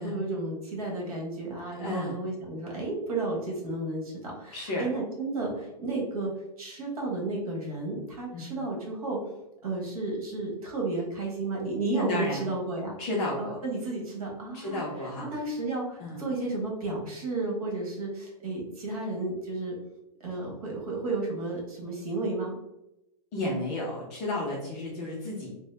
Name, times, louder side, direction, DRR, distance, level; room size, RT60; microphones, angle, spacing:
voice 1, 0.0-6.3 6.6-9.2 9.6-13.0 13.4-19.7 20.2-22.5, right 2 dB, 65° right, -1 dB, 1.2 m, -32 dB
voice 2, 1.7-2.2 4.5-4.9 8.3-8.5 11.9-12.5 13.0-13.6 14.5-15.3 16.0-16.2 23.3-25.5, left 1 dB, 15° left, -5 dB, 0.4 m, -32 dB
3.5 x 2.1 x 3.2 m, 0.89 s
supercardioid pair, 175°, 20 cm